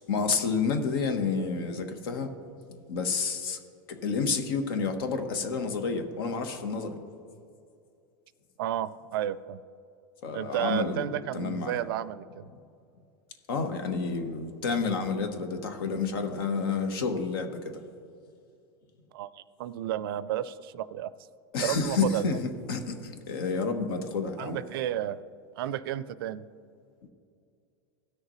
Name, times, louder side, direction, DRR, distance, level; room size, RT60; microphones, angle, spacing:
voice 1, 0.1-2.3 2.9-3.6 3.9-7.0 10.2-11.8 13.5-17.7 21.5-24.6, left 5 dB, 80° left, 6 dB, 1.2 m, -30 dB
voice 2, 8.6-9.6 10.3-12.5 19.1-21.1 21.6-22.3 24.4-25.2 25.6-26.4, right 11 dB, 80° right, 16 dB, 0.4 m, -32 dB
17.0 x 6.6 x 3.1 m, 2.4 s
supercardioid pair, 150°, 12 cm